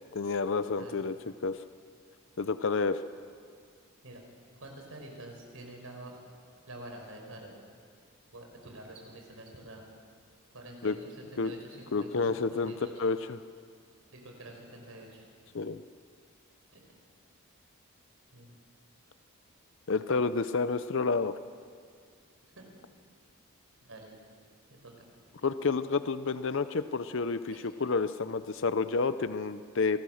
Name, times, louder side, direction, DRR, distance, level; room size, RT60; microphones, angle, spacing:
voice 1, 0.1-1.1 1.4-1.6 2.4-3.0 10.8-11.0 11.4-11.5 11.9-12.7 13.0-13.4 15.5-15.8 19.9-21.3 25.4-27.5 27.8-30.0, left 4 dB, 60° left, 12 dB, 0.6 m, -29 dB
voice 2, 4.6-6.2 6.7-7.5 8.3-9.9 10.5-13.0 14.1-15.2 16.7-16.8 18.3-18.5 22.5-22.7 23.8-24.1 24.7-25.1 27.5-27.7, right 1 dB, 70° right, 2 dB, 4.8 m, -47 dB
25.5 x 18.5 x 6.4 m, 2.1 s
head